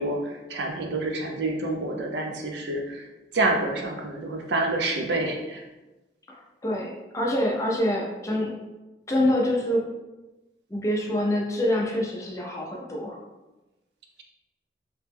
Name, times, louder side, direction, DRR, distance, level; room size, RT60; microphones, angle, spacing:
voice 1, 0.0-3.1 3.3-5.6, right 2 dB, 70° right, 2 dB, 0.5 m, -28 dB
voice 2, 6.3-8.6 9.1-9.8 10.7-13.2, left 1 dB, 15° left, -1 dB, 0.4 m, -26 dB
2.8 x 2.1 x 3.3 m, 1.1 s
head